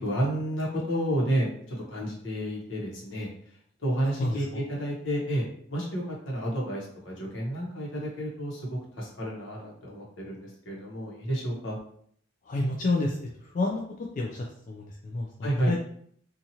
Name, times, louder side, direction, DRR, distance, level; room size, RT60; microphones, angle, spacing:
voice 1, 0.0-3.3 3.8-11.8 15.4-15.7, equal, 75° left, -3 dB, 1.0 m, -31 dB
voice 2, 12.5-13.8 14.2-15.3 15.7-15.8, left 2 dB, 45° left, 0 dB, 0.3 m, -29 dB
2.7 x 2.4 x 2.8 m, 0.64 s
head